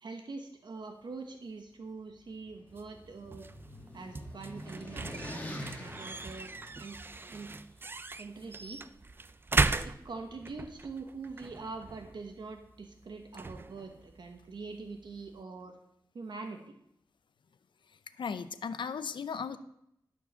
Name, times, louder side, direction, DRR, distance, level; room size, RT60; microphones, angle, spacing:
voice 1, 0.0-3.5 3.9-6.5 6.8-7.0 7.3-7.5 8.2-8.8 9.8-15.7 16.1-16.8, right 4 dB, 70° right, 4 dB, 1.1 m, -44 dB
sound 1, 2.2-7.4, left 1 dB, 20° left, 1.3 m, -45 dB
sound 2, 2.7-15.4, right 3 dB, 25° right, 0.3 m, -38 dB
voice 2, 17.9-19.6, left 6 dB, 85° left, 12 dB, 0.6 m, -37 dB
12.0 x 4.6 x 6.8 m, 0.77 s
wide cardioid pair, 135°, 8 cm